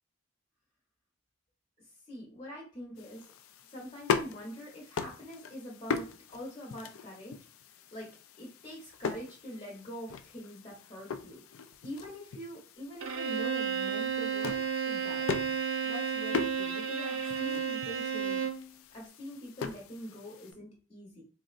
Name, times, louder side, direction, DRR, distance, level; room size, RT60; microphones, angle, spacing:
voice 1, 1.8-3.3 3.7-7.4 7.9-8.1 8.4-11.4 11.8-14.6 14.9-15.3 15.8-18.7 18.9-21.2, equal, 30° left, -3 dB, 0.8 m, -44 dB
sound 1, 3.0-20.5, left 6 dB, 80° left, 0.3 m, -40 dB
Bowed string instrument, 13.0-18.7, right 7 dB, 75° right, 0.4 m, -32 dB
3.8 x 2.0 x 2.4 m, 0.41 s
head